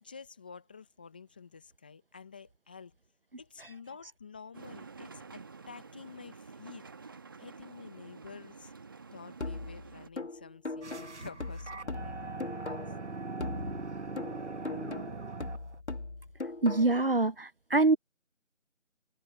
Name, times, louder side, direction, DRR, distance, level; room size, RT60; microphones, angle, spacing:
voice 1, 0.0-2.9 3.4-6.8 7.4-8.7 9.1-12.8 13.6-13.7, left 5 dB, 5° left, 1.5 m, -50 dB
sound 1, 4.5-10.1, right 4 dB, 15° right, 1.8 m, -49 dB
sound 2, 9.4-13.1 13.4-17.1, left 3 dB, 60° left, 2.1 m, -40 dB
sound 3, 10.8-15.8, right 3 dB, 65° right, 1.7 m, -40 dB
voice 2, 16.6-18.0, right 3 dB, 45° right, 1.2 m, -25 dB
figure-of-eight pair, 165°, 38 cm